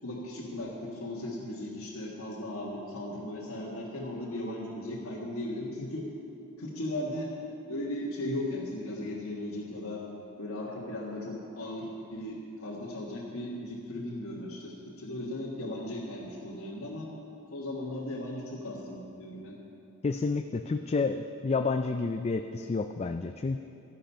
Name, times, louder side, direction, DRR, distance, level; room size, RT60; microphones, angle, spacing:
voice 1, 0.0-6.1 6.6-7.3 7.7-10.0 10.4-17.1 17.5-19.6, left 1 dB, 70° left, -5 dB, 1.7 m, -37 dB
voice 2, 20.0-23.6, left 4 dB, 30° left, 7 dB, 0.3 m, -30 dB
13.5 x 10.0 x 5.6 m, 2.6 s
head